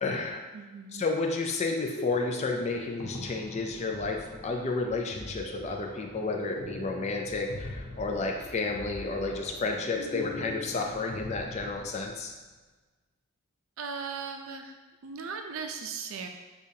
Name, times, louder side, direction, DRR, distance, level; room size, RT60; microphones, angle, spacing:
voice 1, 0.0-0.4 0.9-12.3, left 3 dB, 30° left, 2 dB, 0.4 m, -31 dB
voice 2, 0.5-1.0 13.8-14.8 15.0-16.3, right 5 dB, 70° right, 4 dB, 0.4 m, -38 dB
sound 1, 1.5-12.3, left 1 dB, 70° left, 1.0 m, -41 dB
6.7 x 2.4 x 2.7 m, 1.3 s
head